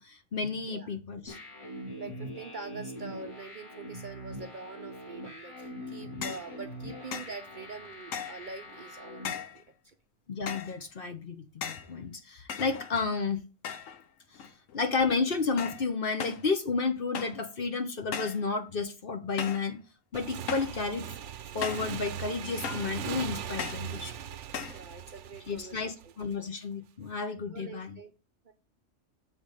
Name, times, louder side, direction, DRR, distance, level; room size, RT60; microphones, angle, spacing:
voice 1, 0.0-1.4 10.3-13.4 14.7-19.8 20.1-21.1 21.5-24.2 25.5-28.0, left 4 dB, 50° left, 1.1 m, -32 dB
sound 1, 1.3-9.2, equal, 70° left, 2.7 m, -43 dB
voice 2, 2.0-9.9 24.7-26.1 27.5-28.1 28.4-28.5, right 4 dB, 50° right, 0.7 m, -45 dB
sound 2, 6.2-6.5 7.1-7.4 8.1-8.5 9.2-9.6 10.5-10.8 11.6-11.9 12.5-13.1 13.6-14.0 14.3-14.8 15.6-15.9 16.2-16.5 17.1-17.5 18.1-18.5 19.4-19.7 20.5-20.8 21.6-22.0 22.6-23.0 23.6-23.9 24.5-24.8, left 7 dB, 85° left, 1.2 m, -37 dB
Motorcycle / Engine, 20.1-26.5, right 9 dB, 70° right, 1.0 m, -39 dB
7.7 x 3.7 x 6.6 m
omnidirectional pair, 1.3 m